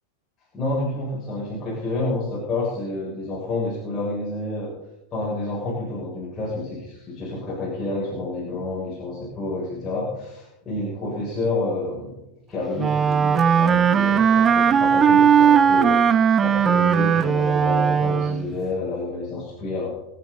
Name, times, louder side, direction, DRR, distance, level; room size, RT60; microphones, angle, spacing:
voice 1, 0.5-4.7 5.1-12.2 12.5-16.0 16.4-19.9, left 2 dB, 20° left, -7 dB, 7.7 m, -29 dB
Wind instrument woodwind instrument, 12.8-18.5, right 7 dB, 25° right, 0.7 m, -18 dB
26.0 x 10.5 x 4.3 m, 0.92 s
figure-of-eight pair, 90°, 0 cm